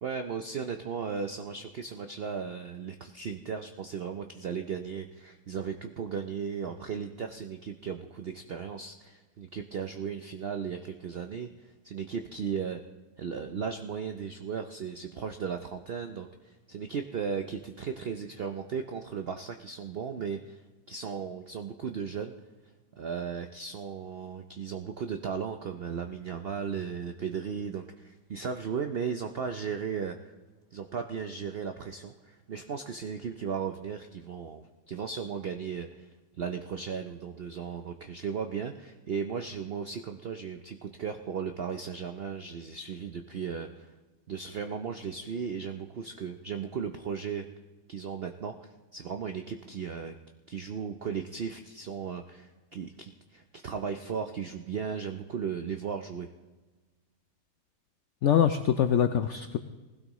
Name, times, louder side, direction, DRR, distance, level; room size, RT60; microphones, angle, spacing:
voice 1, 0.0-12.8 13.2-20.6 20.9-22.3 23.0-30.3 30.7-36.1 36.4-43.9 44.3-47.5 47.9-50.1 50.5-56.3, right 6 dB, 70° right, 6 dB, 0.5 m, -36 dB
voice 2, 58.2-59.6, left 9 dB, 75° left, 9 dB, 0.6 m, -24 dB
19.5 x 16.0 x 3.1 m, 1.2 s
omnidirectional pair, 1.8 m